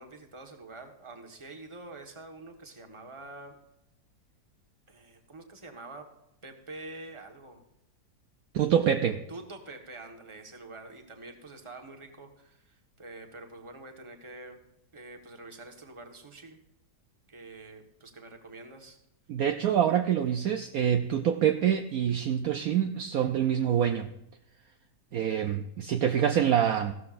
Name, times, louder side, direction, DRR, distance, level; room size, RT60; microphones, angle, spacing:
voice 1, 0.0-3.6 4.9-6.1 6.4-7.6 9.3-14.6 14.9-16.6 17.3-19.0, right 2 dB, 20° right, 4 dB, 1.3 m, -46 dB
voice 2, 8.5-9.2 19.3-24.1 25.1-26.9, right 9 dB, 65° right, 7 dB, 1.0 m, -26 dB
15.5 x 12.5 x 2.5 m, 0.86 s
omnidirectional pair, 1.8 m